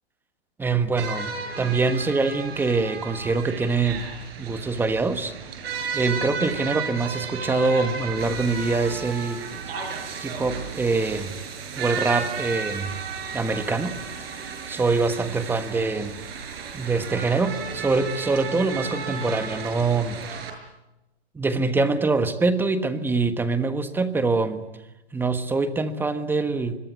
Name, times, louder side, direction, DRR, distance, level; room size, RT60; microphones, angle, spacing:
voice 1, 0.6-4.0 4.4-5.3 5.9-9.4 10.2-11.3 11.8-12.9 13.3-14.0 14.7-16.2 16.7-20.2 21.3-24.6 25.1-26.8, right 3 dB, 5° right, 10 dB, 1.3 m, -24 dB
sound 1, 1.0-20.5, right 6 dB, 65° right, 6.9 m, -34 dB
25.5 x 22.0 x 9.2 m, 0.97 s
hypercardioid pair, 155°, 32 cm